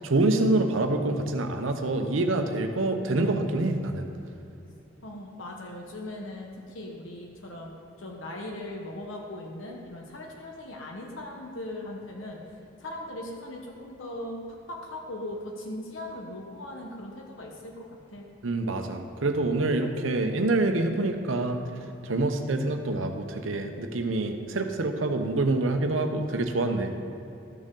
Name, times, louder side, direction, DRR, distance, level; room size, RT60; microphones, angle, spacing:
voice 1, 0.0-4.0 18.4-21.6 22.1-26.9, right 2 dB, 90° right, 6 dB, 0.8 m, -26 dB
voice 2, 5.0-6.5 6.7-7.7 8.0-12.4 12.8-14.4 14.7-18.3, left 1 dB, 85° left, 0 dB, 1.1 m, -39 dB
13.5 x 6.5 x 3.8 m, 2.8 s
head